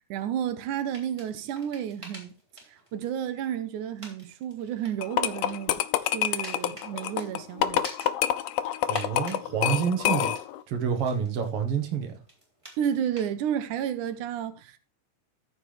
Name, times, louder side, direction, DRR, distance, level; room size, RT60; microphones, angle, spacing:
voice 1, 0.1-2.3 2.7-5.8 6.1-7.8 12.8-14.8, right 9 dB, 90° right, 2.3 m, -31 dB
sound 1, 0.9-9.5 9.8-13.3, right 1 dB, 10° right, 2.6 m, -49 dB
sound 2, 5.0-10.6, left 11 dB, 75° left, 1.6 m, -27 dB
voice 2, 8.9-10.3 10.7-12.2, right 7 dB, 55° right, 2.3 m, -28 dB
14.0 x 5.9 x 3.3 m
omnidirectional pair, 3.4 m